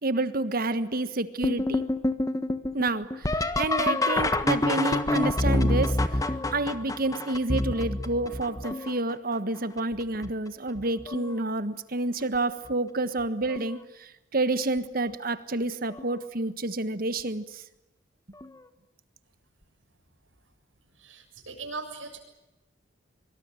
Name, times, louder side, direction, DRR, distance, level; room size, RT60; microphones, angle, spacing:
voice 1, 0.0-1.9 2.7-6.2 6.5-17.6, right 2 dB, 50° right, 12 dB, 1.5 m, -29 dB
sound 1, 1.4-9.1 9.8-10.3 10.8-11.4 12.7-12.8 13.5-13.8 16.0-16.1 18.4-18.5, left 1 dB, 20° left, 1.4 m, -27 dB
voice 2, 21.0-22.2, right 4 dB, 90° right, 5 dB, 7.3 m, -39 dB
24.5 x 24.0 x 9.1 m, 0.94 s
head